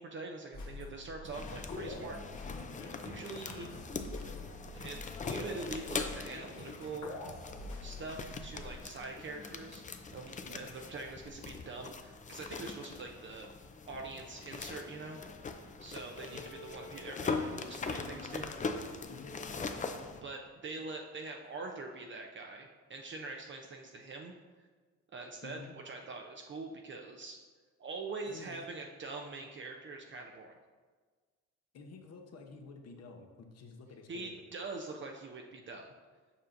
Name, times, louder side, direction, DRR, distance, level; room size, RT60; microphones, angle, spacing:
voice 1, 0.0-2.2 3.0-3.7 4.7-7.1 7.8-9.8 10.1-13.5 13.9-15.2 15.8-18.5 20.2-24.3 25.1-25.6 25.8-27.4 27.8-30.6 34.1-35.9, right 3 dB, 40° right, 2 dB, 0.5 m, -44 dB
sound 1, 0.5-8.4, left 2 dB, 75° left, 1.3 m, -45 dB
sound 2, 1.3-20.2, left 4 dB, 25° left, 0.5 m, -42 dB
voice 2, 10.4-10.7 16.1-16.4 19.0-19.3 25.4-25.7 28.3-28.7 31.7-34.3, left 4 dB, 55° left, 3 dB, 0.9 m, -50 dB
6.9 x 5.5 x 2.6 m, 1.5 s
cardioid pair, 90°, 30 cm